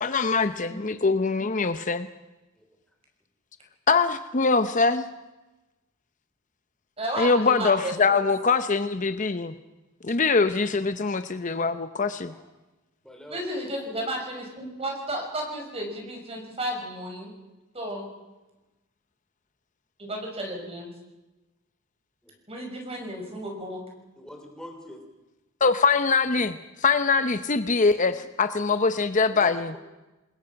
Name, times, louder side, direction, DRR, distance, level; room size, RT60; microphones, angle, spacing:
voice 1, 0.0-2.1 3.9-5.1 7.2-9.5 10.0-12.3 25.6-29.7, left 4 dB, 35° left, 10 dB, 0.7 m, -23 dB
voice 2, 7.0-7.9 13.3-17.3 17.7-18.1 20.0-20.9 22.5-23.9, right 1 dB, 30° right, 1 dB, 5.9 m, -33 dB
voice 3, 13.0-13.5 22.2-22.4 24.2-25.0 29.3-29.8, left 1 dB, 5° left, 3 dB, 3.0 m, -44 dB
28.0 x 20.5 x 5.9 m, 1.1 s
head